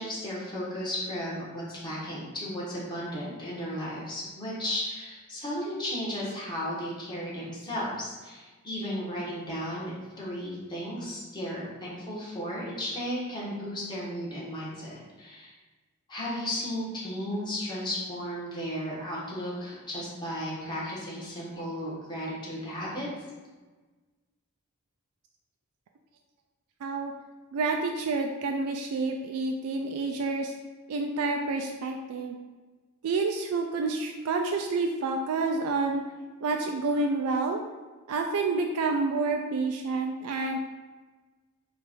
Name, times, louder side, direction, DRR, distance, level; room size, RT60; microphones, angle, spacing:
voice 1, 0.0-15.5 16.1-23.1, equal, 20° left, -7 dB, 1.3 m, -34 dB
voice 2, 26.8-27.1 27.5-30.5 30.9-32.4 33.0-36.0 36.4-37.6 38.1-40.6, right 3 dB, 90° right, 3 dB, 0.4 m, -28 dB
4.8 x 2.5 x 4.5 m, 1.3 s
head